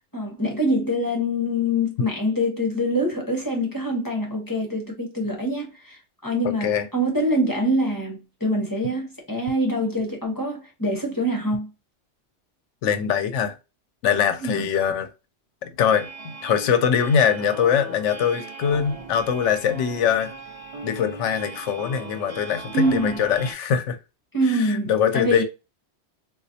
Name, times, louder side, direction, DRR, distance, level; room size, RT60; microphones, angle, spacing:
voice 1, 0.1-11.7 14.4-14.7 22.7-23.2 24.3-25.4, equal, 20° left, 1.0 m, -24 dB
voice 2, 6.4-6.9 12.8-13.5 14.0-15.1 15.6-20.3 20.8-24.0 24.5-25.4, left 7 dB, 85° left, 0.9 m, -23 dB
sound 1, 15.8-23.5, right 3 dB, 35° right, 0.9 m, -38 dB
3.9 x 2.5 x 2.7 m
omnidirectional pair, 1.2 m